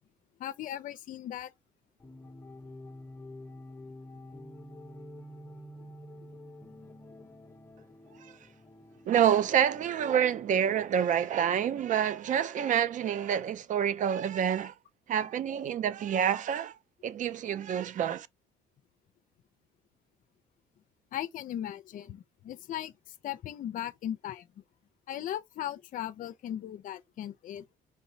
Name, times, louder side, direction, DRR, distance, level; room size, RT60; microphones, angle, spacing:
voice 1, 0.4-1.5 5.8-5.9 21.1-24.6 25.1-27.6, left 11 dB, 55° left, 0.5 m, -38 dB
sound 1, 2.0-11.2, left 1 dB, 15° left, 0.7 m, -49 dB
voice 2, 9.1-14.7 15.1-16.8 17.0-18.3, right 9 dB, 50° right, 0.5 m, -27 dB
4.5 x 3.0 x 2.6 m
cardioid pair, 110°, 17 cm